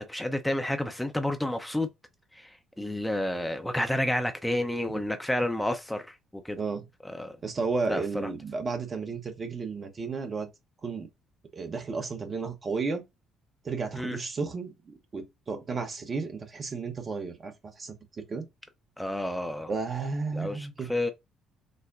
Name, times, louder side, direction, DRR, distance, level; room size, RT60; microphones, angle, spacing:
voice 1, 0.0-1.9 2.3-6.6 7.0-7.4 7.9-8.3 14.0-14.2 19.0-19.7 20.3-21.1, left 1 dB, 5° left, 0.6 m, -30 dB
voice 2, 6.6-6.9 7.4-10.5 10.8-11.1 11.5-13.0 13.6-17.5 17.8-18.0 18.3-18.5 19.7-20.9, right 4 dB, 35° right, 0.9 m, -33 dB
6.3 x 2.1 x 2.6 m
figure-of-eight pair, 50°, 0 cm